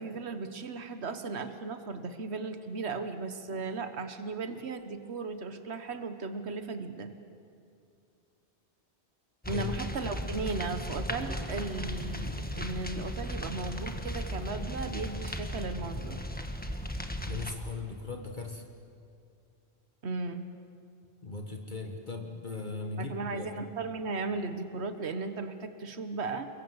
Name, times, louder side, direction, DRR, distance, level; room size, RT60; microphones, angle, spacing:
voice 1, 0.0-7.1 9.5-16.3 20.0-20.5 23.0-26.5, right 4 dB, 70° right, 9 dB, 1.6 m, -36 dB
sound 1, 9.4-17.5, equal, 10° left, 1.5 m, -36 dB
voice 2, 17.3-18.6 21.2-23.5, left 4 dB, 45° left, 3 dB, 1.8 m, -38 dB
28.0 x 22.5 x 8.1 m, 2.4 s
omnidirectional pair, 1.1 m